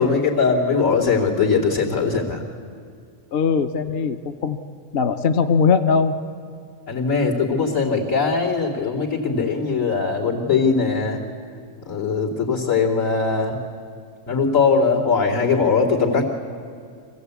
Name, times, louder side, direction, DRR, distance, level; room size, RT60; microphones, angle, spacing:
voice 1, 0.0-2.4 6.9-11.2 11.8-13.6 14.3-16.3, left 5 dB, 85° left, -5 dB, 3.4 m, -20 dB
voice 2, 3.3-4.2 4.4-4.6 4.9-6.2, left 5 dB, 55° left, 8 dB, 0.9 m, -19 dB
25.0 x 15.5 x 8.3 m, 2.2 s
omnidirectional pair, 1.3 m